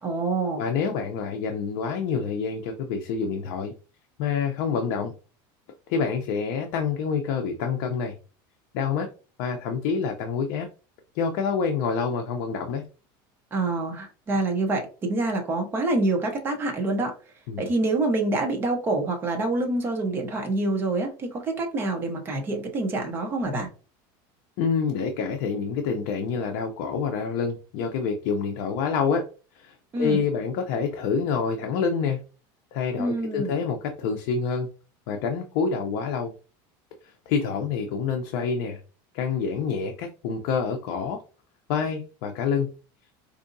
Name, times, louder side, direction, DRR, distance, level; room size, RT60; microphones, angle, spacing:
voice 1, 0.0-0.6 13.5-17.1 17.6-23.7 29.9-30.2 32.9-33.6, right 2 dB, 20° right, 3 dB, 0.8 m, -26 dB
voice 2, 0.6-3.7 4.2-5.1 5.9-8.1 8.7-9.1 9.4-10.7 11.1-12.8 17.5-17.7 24.6-29.3 29.6-32.2 32.7-34.7 35.1-36.3 37.3-38.8 39.1-41.2 41.7-42.7, left 6 dB, 55° left, 4 dB, 0.6 m, -27 dB
4.8 x 2.7 x 2.6 m, 0.35 s
cardioid pair, 170°, 11 cm